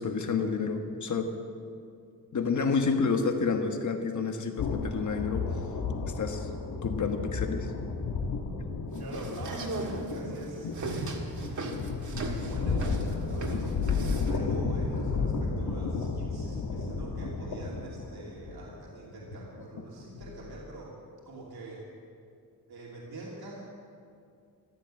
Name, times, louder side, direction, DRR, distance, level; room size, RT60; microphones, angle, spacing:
voice 1, 0.0-1.3 2.3-5.6 6.1-6.5 6.8-7.7, left 5 dB, 50° left, 5 dB, 1.4 m, -29 dB
sound 1, 4.6-20.7, left 4 dB, 80° left, 1.5 m, -33 dB
sound 2, 9.0-14.4, right 3 dB, 50° right, 1.7 m, -37 dB
voice 2, 9.0-11.2 12.4-21.0 21.3-21.8 22.7-23.6, right 2 dB, 80° right, -4 dB, 2.7 m, -44 dB
14.5 x 12.0 x 7.7 m, 2.4 s
wide cardioid pair, 170°, 37 cm